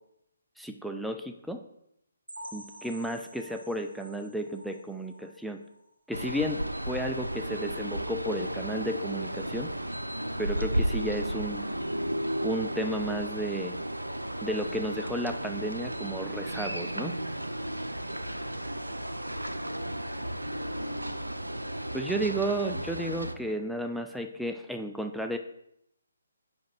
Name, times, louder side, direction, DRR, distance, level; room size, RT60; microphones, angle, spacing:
voice 1, 0.6-1.6 2.5-5.6 6.1-9.7 10.4-11.7 12.4-13.7 14.4-17.1 21.9-25.4, right 1 dB, ahead, 4 dB, 0.3 m, -33 dB
sound 1, 2.3-5.9 6.3-6.5 6.8-6.9 7.4-7.5, equal, 65° right, 2.0 m, -48 dB
sound 2, 6.1-23.3, right 1 dB, 85° right, 0.6 m, -33 dB
voice 2, 18.1-19.2 21.9-22.9 23.3-23.6, left 1 dB, 80° left, -1 dB, 2.4 m, -53 dB
5.1 x 5.1 x 6.1 m, 0.78 s
figure-of-eight pair, 140°, 0 cm